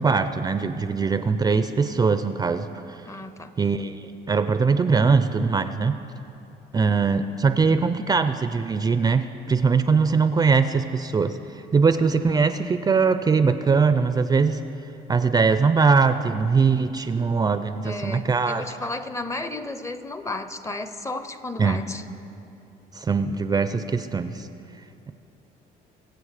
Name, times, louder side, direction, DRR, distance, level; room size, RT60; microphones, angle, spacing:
voice 1, 0.0-3.1 3.6-6.0 6.7-14.6 15.1-18.7 21.6-21.8 22.9-24.5, right 5 dB, 20° right, 11 dB, 0.4 m, -21 dB
voice 2, 3.1-3.5 17.7-22.0, left 2 dB, 15° left, 11 dB, 0.6 m, -33 dB
23.0 x 7.8 x 4.9 m, 2.7 s
cardioid pair, 110°, 17 cm